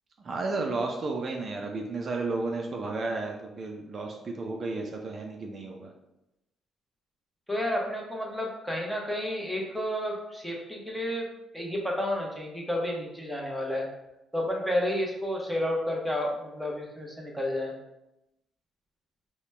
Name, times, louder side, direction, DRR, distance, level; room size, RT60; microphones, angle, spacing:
voice 1, 0.2-5.9, right 3 dB, 50° right, 1 dB, 0.5 m, -32 dB
voice 2, 7.5-11.3 11.5-13.9 14.3-17.7, left 1 dB, ahead, -2 dB, 0.9 m, -31 dB
4.0 x 2.2 x 3.2 m, 0.90 s
cardioid pair, 85°, 0 cm